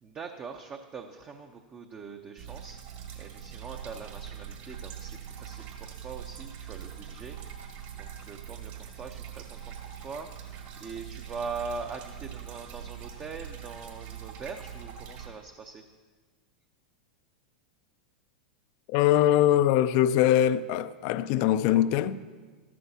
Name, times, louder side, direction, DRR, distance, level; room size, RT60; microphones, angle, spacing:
voice 1, 0.0-2.8 3.2-7.7 8.0-15.8, right 5 dB, 30° right, 0.6 m, -42 dB
sound 1, 2.4-15.3, right 9 dB, 50° right, 1.9 m, -43 dB
voice 2, 18.9-22.2, left 12 dB, 50° left, 0.4 m, -22 dB
13.5 x 12.0 x 2.8 m
hypercardioid pair, 95°, 5 cm